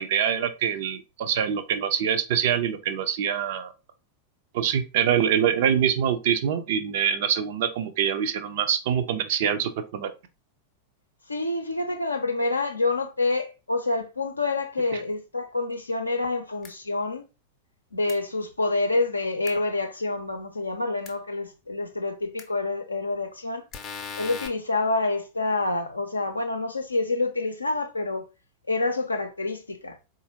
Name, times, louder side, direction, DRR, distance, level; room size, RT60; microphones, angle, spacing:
voice 1, 0.0-3.7 4.5-10.1, right 8 dB, 55° right, 0.5 m, -25 dB
voice 2, 11.3-17.2 17.9-23.6 24.2-28.3 28.7-30.0, left 2 dB, 80° left, 0.5 m, -27 dB
sound 1, 16.6-16.7 18.1-18.2 19.5-19.6 21.1-21.2 22.4-22.5 23.7-24.5, left 6 dB, 30° left, 0.5 m, -37 dB
4.1 x 2.5 x 2.8 m
figure-of-eight pair, 90°, 0 cm